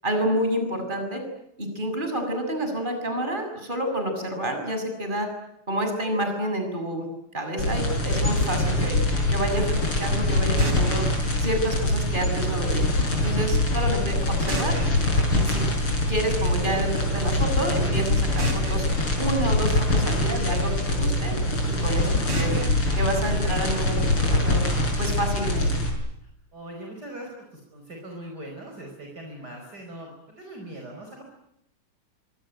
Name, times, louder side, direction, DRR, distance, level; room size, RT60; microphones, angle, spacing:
voice 1, 0.0-1.2 1.6-5.3 5.7-7.0 7.3-9.0 9.3-11.1 11.4-12.8 13.2-14.7 15.3-15.6 16.1-18.8 19.2-21.3 21.6-22.6 23.0-24.6 25.0-25.7, right 1 dB, 20° right, 5 dB, 7.1 m, -29 dB
sound 1, 7.6-25.9, left 1 dB, 75° left, 7.2 m, -24 dB
sound 2, 10.6-12.6 14.5-16.5 18.4-20.6 22.3-24.3, right 2 dB, 75° right, 5.9 m, -38 dB
voice 2, 19.7-20.2 26.2-31.3, right 1 dB, 45° right, 1 dB, 5.5 m, -41 dB
25.0 x 25.0 x 9.1 m, 0.78 s
omnidirectional pair, 2.4 m